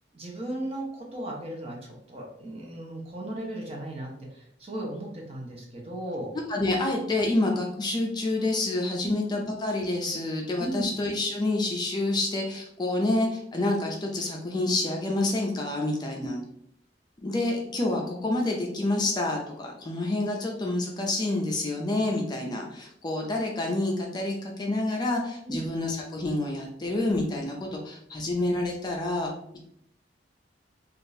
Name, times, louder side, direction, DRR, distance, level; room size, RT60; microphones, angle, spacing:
voice 1, 0.1-6.3 9.0-9.1 9.4-9.5 10.6-10.9 16.2-16.3 25.4-25.6, right 1 dB, 35° right, -1 dB, 0.8 m, -36 dB
voice 2, 6.5-16.4 17.2-29.3, left 2 dB, 25° left, 0 dB, 0.4 m, -28 dB
3.5 x 2.4 x 2.6 m, 0.70 s
head